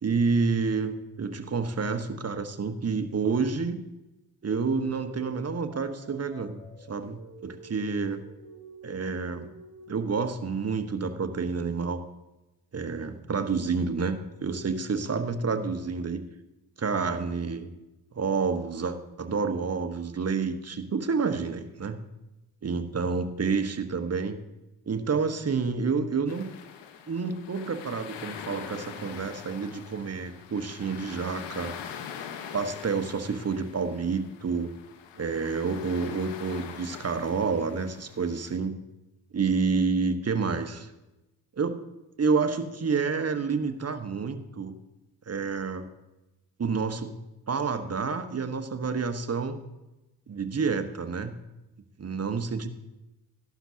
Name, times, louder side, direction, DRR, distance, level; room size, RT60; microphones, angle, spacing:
voice 1, 0.0-3.8 4.4-6.6 6.9-8.2 8.8-9.5 9.9-12.0 12.7-16.2 16.8-17.7 18.1-22.0 22.6-24.4 24.9-26.5 27.1-31.7 32.5-34.7 35.2-38.8 39.3-40.9 41.6-41.8 42.2-44.8 45.3-45.9 46.6-47.1 47.5-49.6 50.3-51.3 52.0-52.7, right 5 dB, 35° right, 8 dB, 1.2 m, -29 dB
sound 1, 4.5-10.0, equal, 50° left, 3.5 m, -50 dB
sound 2, 26.3-38.6, left 8 dB, 70° left, 1.3 m, -43 dB
14.0 x 11.5 x 2.8 m, 0.99 s
hypercardioid pair, 45°, 44 cm